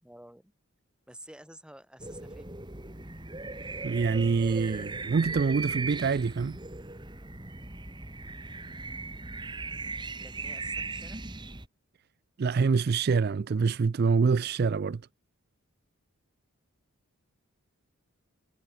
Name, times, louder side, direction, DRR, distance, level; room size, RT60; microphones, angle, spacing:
voice 1, 0.0-0.5 1.1-2.6 10.2-11.2, right 1 dB, 5° right, 3.2 m, -50 dB
sound 1, 2.0-11.7, right 3 dB, 20° right, 2.0 m, -38 dB
voice 2, 3.8-6.6 12.4-15.0, right 5 dB, 45° right, 0.4 m, -25 dB
head